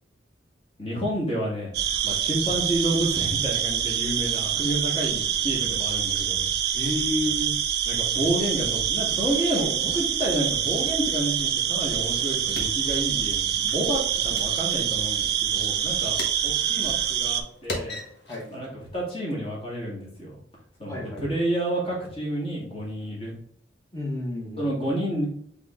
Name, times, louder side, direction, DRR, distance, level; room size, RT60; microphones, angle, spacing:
voice 1, 0.8-1.7 2.0-6.5 7.9-16.2 16.4-18.0 18.5-20.4 20.8-23.3 24.6-25.2, right 1 dB, 30° left, -4 dB, 1.8 m, -29 dB
sound 1, 1.7-17.4, right 9 dB, 60° right, 0.5 m, -26 dB
voice 2, 6.7-7.5 18.3-18.4 20.9-21.2 23.9-24.7, left 1 dB, 15° left, -1 dB, 1.2 m, -30 dB
sound 2, 11.7-18.7, left 1 dB, 60° left, 1.3 m, -41 dB
3.8 x 3.6 x 3.6 m, 0.65 s
head